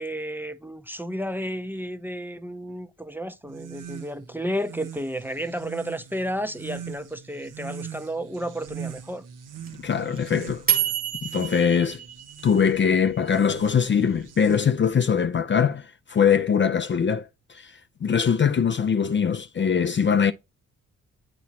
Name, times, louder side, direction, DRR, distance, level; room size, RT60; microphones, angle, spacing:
voice 1, 0.0-9.2, equal, 5° right, 0.6 m, -32 dB
sound 1, 3.4-15.0, right 8 dB, 70° right, 0.8 m, -42 dB
sound 2, 9.7-12.9, right 8 dB, 25° right, 1.1 m, -27 dB
voice 2, 9.8-10.6 11.2-12.0 12.4-20.3, left 7 dB, 35° left, 0.5 m, -22 dB
8.2 x 3.0 x 4.2 m
supercardioid pair, 45°, 33 cm